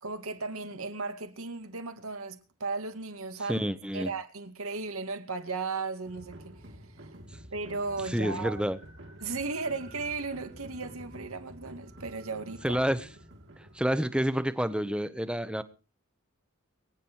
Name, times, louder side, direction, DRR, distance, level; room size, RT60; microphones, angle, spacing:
voice 1, 0.0-3.6 3.9-6.5 7.5-8.7 9.2-12.8, right 3 dB, 85° right, 2.2 m, -35 dB
voice 2, 3.5-4.1 8.1-8.8 12.6-13.1 13.7-15.6, equal, 5° right, 0.9 m, -28 dB
sound 1, 6.0-14.5, right 1 dB, 55° right, 2.9 m, -49 dB
23.5 x 10.0 x 4.6 m
head